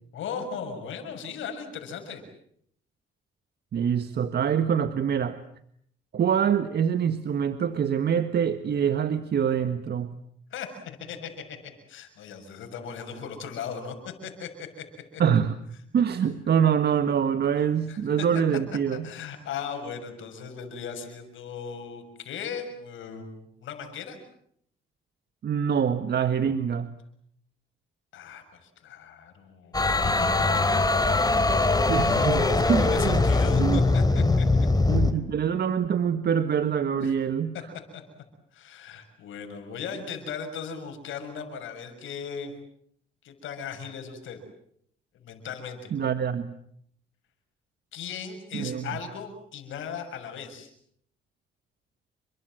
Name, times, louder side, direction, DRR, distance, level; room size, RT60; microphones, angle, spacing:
voice 1, 0.1-2.2 10.5-14.8 15.1-15.2 17.9-18.3 18.9-24.2 28.1-30.6 31.0-34.5 37.0-37.1 37.9-38.0 38.5-42.5 43.2-44.4 45.1-45.9 47.9-50.7, left 6 dB, 80° left, 6 dB, 6.9 m, -38 dB
voice 2, 3.7-5.4 6.1-10.1 15.2-15.6 15.9-19.1 25.4-26.9 31.9-33.3 33.6-33.8 34.9-37.5 45.9-46.6 48.5-48.9, right 8 dB, 55° right, 10 dB, 1.6 m, -25 dB
sound 1, 29.7-35.1, left 3 dB, 20° left, 3.7 m, -22 dB
30.0 x 24.0 x 7.8 m, 0.68 s
cardioid pair, 90°, 20 cm